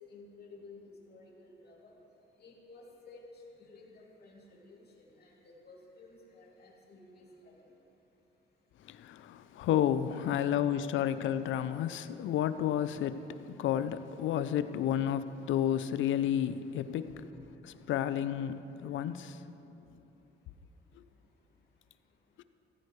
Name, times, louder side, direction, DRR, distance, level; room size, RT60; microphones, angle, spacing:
voice 1, 0.0-1.9 2.4-7.6 17.3-17.5 17.8-17.9, left 3 dB, 50° left, -3 dB, 2.7 m, -54 dB
voice 2, 8.9-17.1 17.9-19.4 22.4-22.5, left 10 dB, 75° left, 13 dB, 0.6 m, -31 dB
15.5 x 14.5 x 3.2 m, 2.9 s
cardioid pair, 90°, 20 cm